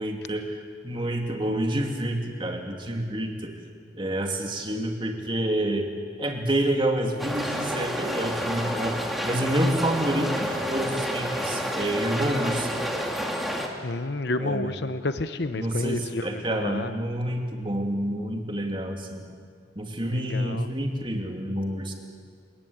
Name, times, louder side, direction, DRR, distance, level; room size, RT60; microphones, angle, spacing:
voice 1, 0.0-3.5 3.9-5.9 6.2-9.0 9.2-12.7 14.4-14.7 15.5-19.2 19.7-21.9, right 1 dB, 25° right, 3 dB, 2.7 m, -28 dB
sound 1, 7.2-13.7, equal, ahead, 2.4 m, -29 dB
voice 2, 13.8-16.9 20.1-20.7, left 2 dB, 60° left, 10 dB, 0.9 m, -30 dB
29.5 x 19.0 x 8.9 m, 2.1 s
head